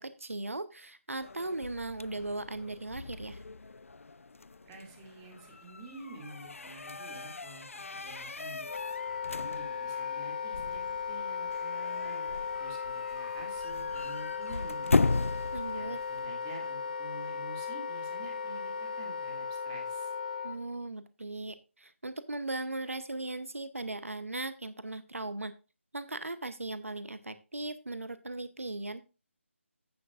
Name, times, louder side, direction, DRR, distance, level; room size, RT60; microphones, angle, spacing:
voice 1, 0.0-3.4 15.5-16.0 20.4-25.5 25.9-29.0, right 2 dB, 85° right, 12 dB, 0.9 m, -38 dB
sound 1, 1.2-16.3, left 3 dB, 80° left, 0.4 m, -37 dB
voice 2, 4.7-8.7 9.1-10.8 11.1-12.3 12.6-15.3 15.8-20.1, right 2 dB, 15° right, 1 dB, 2.3 m, -49 dB
Wind instrument woodwind instrument, 8.6-20.6, left 6 dB, 40° left, 1.0 m, -36 dB
15.5 x 6.2 x 2.5 m, 0.31 s
figure-of-eight pair, 155°, 7 cm